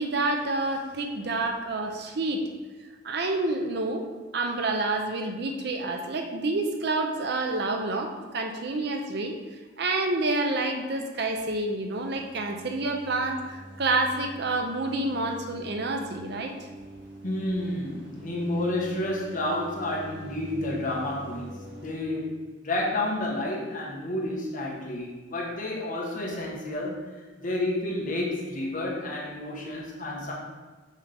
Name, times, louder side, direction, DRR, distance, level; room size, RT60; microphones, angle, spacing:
voice 1, 0.0-2.5 3.0-4.1 4.3-9.4 9.8-16.5, right 2 dB, 60° right, 3 dB, 0.7 m, -28 dB
sound 1, 11.9-22.0, right 1 dB, 80° right, 2.0 m, -45 dB
voice 2, 17.2-30.3, left 1 dB, 45° left, -3 dB, 1.3 m, -30 dB
6.4 x 5.2 x 3.5 m, 1.3 s
head